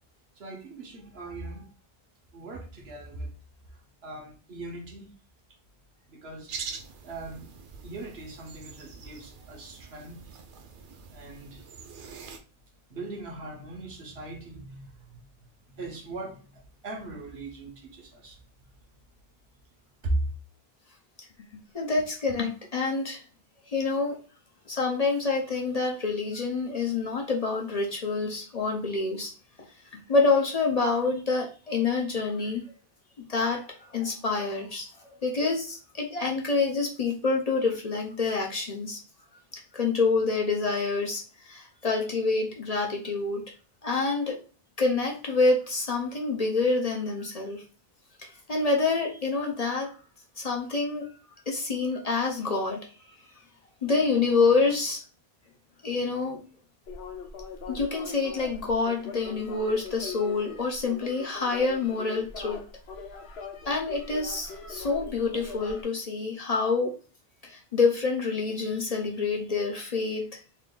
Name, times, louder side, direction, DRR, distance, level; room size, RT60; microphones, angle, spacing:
voice 1, 0.4-1.7 2.3-3.3 4.0-5.1 6.1-6.5 7.0-7.5 7.8-10.2 11.1-11.6 12.9-15.2 15.7-18.4 20.0-20.3, right 2 dB, 75° right, 1 dB, 1.3 m, -38 dB
sound 1, 6.5-12.4, right 5 dB, 60° right, 0.7 m, -44 dB
voice 2, 21.7-23.2 23.7-24.2 24.7-29.3 29.9-32.7 33.3-39.0 39.5-43.4 43.8-44.4 44.8-47.6 48.2-50.0 50.4-51.1 51.5-52.8 53.8-55.0 55.8-56.4 57.7-62.6 63.7-66.9 67.4-70.4, left 3 dB, 45° left, 0 dB, 0.7 m, -27 dB
sound 2, 56.9-65.8, left 5 dB, 85° left, 1.0 m, -41 dB
3.4 x 2.5 x 3.7 m, 0.36 s
omnidirectional pair, 1.0 m